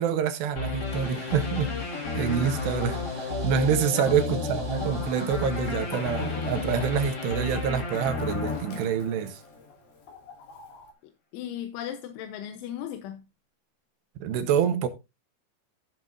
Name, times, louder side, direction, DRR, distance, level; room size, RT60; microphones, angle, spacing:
voice 1, 0.0-1.8 2.1-9.4 14.2-14.9, right 8 dB, 75° right, 2.9 m, -27 dB
sound 1, 0.6-9.6, left 4 dB, 40° left, 1.5 m, -32 dB
sound 2, 0.8-7.1, right 4 dB, 35° right, 3.9 m, -49 dB
voice 2, 4.0-4.4 11.3-13.2, left 10 dB, 85° left, 3.4 m, -36 dB
Chicken rooster, 4.2-10.9, left 6 dB, 60° left, 4.1 m, -47 dB
15.5 x 7.7 x 2.6 m
omnidirectional pair, 5.3 m